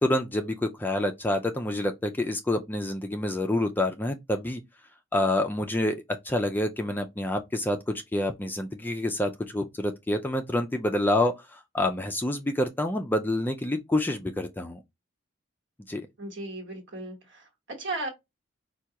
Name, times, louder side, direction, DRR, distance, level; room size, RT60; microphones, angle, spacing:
voice 1, 0.0-4.6 5.1-6.0 6.2-14.8 15.9-16.1, left 1 dB, 10° left, 0.3 m, -27 dB
voice 2, 16.2-18.1, right 2 dB, 65° right, 1.2 m, -36 dB
4.6 x 2.3 x 2.8 m
head